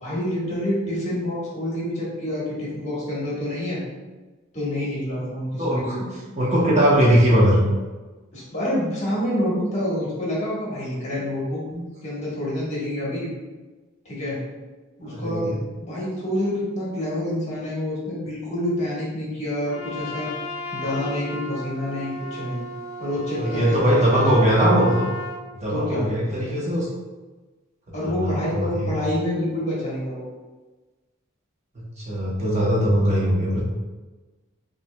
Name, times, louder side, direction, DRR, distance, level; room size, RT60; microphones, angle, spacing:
voice 1, 0.0-3.8 4.5-6.0 8.3-11.6 12.0-13.3 14.0-14.4 15.0-20.3 20.7-22.6 23.0-24.2 25.7-26.1 27.9-30.2, left 1 dB, 35° left, -7 dB, 1.3 m, -27 dB
voice 2, 5.6-6.0 6.4-7.6 11.7-11.8 15.0-15.6 23.4-25.1 25.5-26.9 28.0-28.9 31.7-33.6, equal, 35° right, -5 dB, 0.8 m, -20 dB
Trumpet, 19.7-25.4, left 1 dB, 80° left, 0.5 m, -34 dB
5.5 x 2.4 x 2.2 m, 1.2 s
head